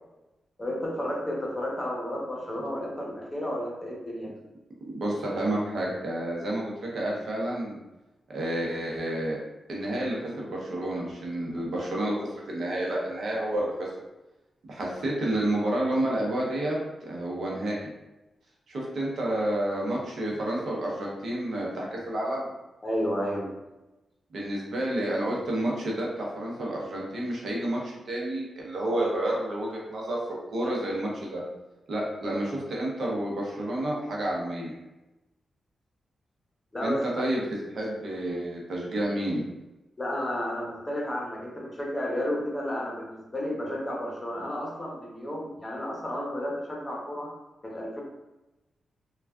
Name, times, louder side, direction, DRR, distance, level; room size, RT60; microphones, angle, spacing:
voice 1, 0.6-4.3 22.8-23.5 30.6-30.7 36.7-37.3 40.0-47.3 47.6-48.0, equal, 25° left, -2 dB, 0.9 m, -32 dB
voice 2, 4.8-7.8 8.3-9.4 9.7-13.9 14.7-17.8 18.7-22.5 24.3-30.2 30.5-31.4 31.9-34.7 36.8-37.4 37.7-39.4, right 1 dB, 70° right, -3 dB, 0.8 m, -30 dB
3.3 x 2.3 x 2.3 m, 1.0 s
cardioid pair, 55°, 0 cm